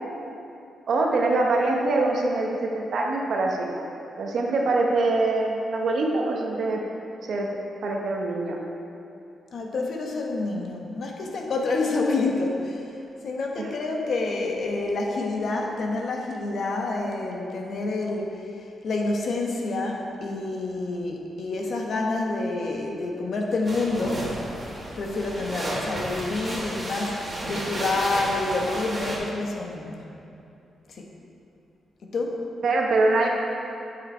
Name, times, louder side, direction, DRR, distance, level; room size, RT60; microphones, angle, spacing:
voice 1, 0.9-3.7 4.2-6.8 7.2-7.5 7.8-8.6 13.6-13.7 32.6-33.3, right 2 dB, 60° right, 0 dB, 1.1 m, -24 dB
voice 2, 9.5-12.9 13.2-24.3 25.0-30.0 30.9-31.1 32.1-32.4, left 3 dB, 55° left, 1 dB, 1.0 m, -28 dB
sound 1, 23.6-29.2, right 1 dB, 20° right, 1.8 m, -33 dB
8.1 x 7.0 x 4.4 m, 2.7 s
wide cardioid pair, 145°, 0 cm